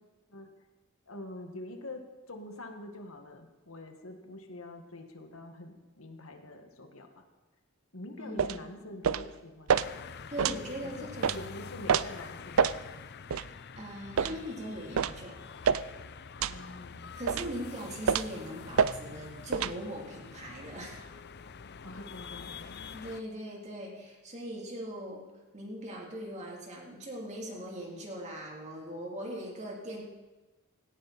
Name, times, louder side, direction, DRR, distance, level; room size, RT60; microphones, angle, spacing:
voice 1, 1.1-7.2 7.9-10.0 10.5-13.1 16.5-17.4 21.8-22.7, left 1 dB, 85° left, 5 dB, 1.9 m, -45 dB
voice 2, 8.2-8.8 10.3-11.5 13.7-15.4 17.2-21.0 22.9-25.2 25.5-30.0, equal, 35° right, -1 dB, 3.4 m, -40 dB
sound 1, 8.4-8.6 9.0-9.3 9.7-9.9 10.4-10.6 11.2-11.4 11.9-12.1 12.6-12.8 13.3-13.5 14.2-14.4 15.0-15.2 15.6-15.9 16.4-16.6 17.3-17.5 18.1-18.3 18.8-18.9 19.5-19.7, right 7 dB, 90° right, 0.5 m, -26 dB
sound 2, 9.7-23.2, left 5 dB, 55° left, 0.6 m, -46 dB
17.5 x 17.0 x 4.3 m, 1.1 s
head